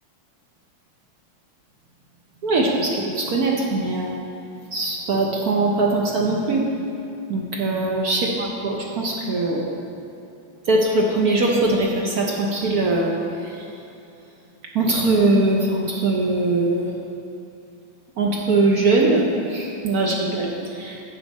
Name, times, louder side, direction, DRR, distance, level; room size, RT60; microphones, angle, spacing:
voice 1, 2.4-4.1 4.7-6.6 7.3-9.7 10.7-13.1 13.4-13.6 14.7-16.9 18.2-21.1, right 2 dB, 60° right, -1 dB, 1.0 m, -21 dB
7.9 x 7.0 x 5.3 m, 2.7 s
omnidirectional pair, 2.3 m